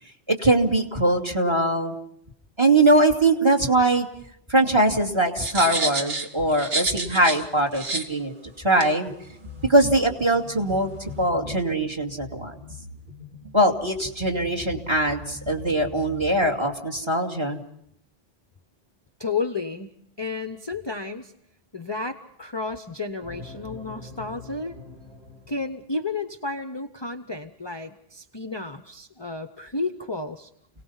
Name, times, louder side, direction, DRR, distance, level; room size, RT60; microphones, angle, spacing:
voice 1, 0.3-2.0 2.6-4.1 4.5-9.1 9.7-10.9 11.2-12.5 13.5-17.6, right 1 dB, 25° right, 3 dB, 2.4 m, -21 dB
sound 1, 5.4-7.4 7.7-8.0 8.8-8.9, right 2 dB, 60° right, 2.1 m, -28 dB
sound 2, 9.0-16.3, left 3 dB, 45° right, 3.9 m, -42 dB
voice 2, 19.2-21.3 21.7-24.8 25.5-30.5, left 3 dB, 25° left, 8 dB, 0.8 m, -32 dB
sound 3, 23.2-26.0, left 2 dB, 85° right, 3.5 m, -43 dB
29.5 x 18.5 x 5.6 m, 0.72 s
omnidirectional pair, 1.1 m